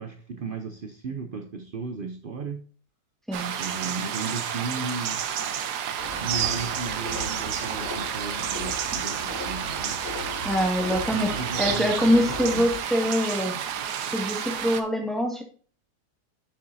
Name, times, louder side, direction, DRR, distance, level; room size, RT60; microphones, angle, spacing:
voice 1, 0.0-2.6 3.6-5.2 6.0-10.0 11.1-12.7, right 4 dB, 60° right, 0.6 m, -35 dB
sound 1, 3.3-14.8, right 8 dB, 85° right, 1.4 m, -30 dB
sound 2, 6.0-12.8, left 2 dB, 70° left, 3.0 m, -37 dB
voice 2, 10.4-11.3 11.6-13.5 14.1-15.4, equal, ahead, 1.8 m, -24 dB
8.8 x 6.9 x 2.6 m
omnidirectional pair, 1.7 m